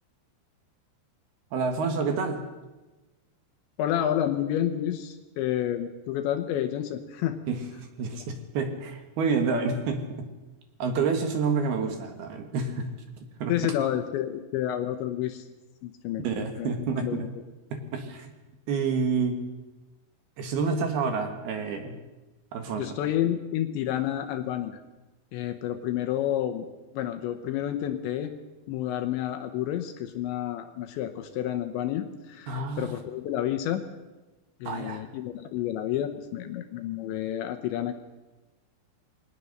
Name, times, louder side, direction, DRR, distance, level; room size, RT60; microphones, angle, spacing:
voice 1, 1.5-2.4 7.5-10.3 10.8-12.9 13.4-13.8 16.2-17.3 17.7-18.3 18.7-19.4 20.4-22.0 22.5-23.0 32.5-32.9 34.6-35.0, right 4 dB, 65° right, 6 dB, 3.1 m, -29 dB
voice 2, 3.8-7.4 13.5-15.5 15.8-16.3 16.6-16.7 17.0-17.3 22.8-24.8 25.3-26.7 26.9-28.3 28.7-33.8 34.6-37.9, left 11 dB, 75° left, 7 dB, 3.1 m, -30 dB
22.0 x 18.5 x 6.6 m, 1.1 s
omnidirectional pair, 5.5 m